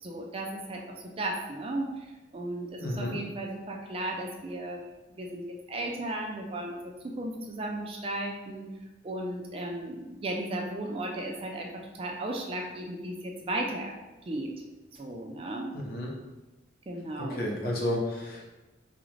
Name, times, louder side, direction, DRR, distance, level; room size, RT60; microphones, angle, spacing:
voice 1, 0.0-4.8 5.1-8.7 9.0-14.0 14.2-14.5 14.9-15.7 16.9-17.5, right 1 dB, 30° right, 0 dB, 0.3 m, -35 dB
voice 2, 2.8-3.2 15.8-16.1 17.2-18.5, left 1 dB, 50° left, -2 dB, 0.7 m, -31 dB
3.9 x 2.4 x 3.2 m, 1.1 s
head